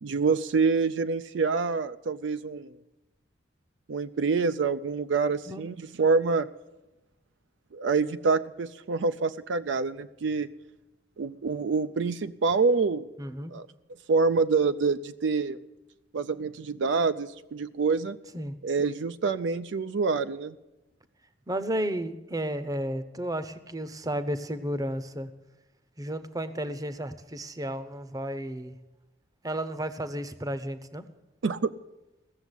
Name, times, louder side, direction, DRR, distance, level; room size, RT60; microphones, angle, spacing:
voice 1, 0.0-2.7 3.9-6.5 7.7-10.5 11.2-13.1 13.5-13.7 14.1-15.6 16.1-18.2 18.6-20.5 31.4-31.7, right 4 dB, 65° right, 11 dB, 0.4 m, -26 dB
voice 2, 13.2-13.5 18.3-18.6 21.5-25.3 26.0-28.7 29.4-31.0, right 1 dB, 20° right, 12 dB, 0.7 m, -33 dB
16.0 x 7.1 x 9.8 m, 1.0 s
head